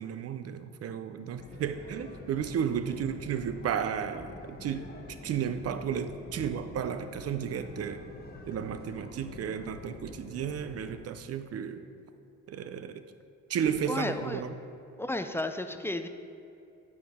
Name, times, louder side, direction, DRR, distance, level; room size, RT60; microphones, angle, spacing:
voice 1, 0.0-8.0 8.5-11.9 12.5-13.0 13.5-14.5, right 8 dB, 55° right, 10 dB, 0.5 m, -33 dB
sound 1, 1.4-11.0, left 3 dB, 30° left, 0.9 m, -46 dB
voice 2, 13.9-14.4 15.0-16.1, left 2 dB, 10° left, 8 dB, 0.3 m, -33 dB
9.1 x 4.9 x 3.6 m, 2.6 s
cardioid pair, 90°, 30 cm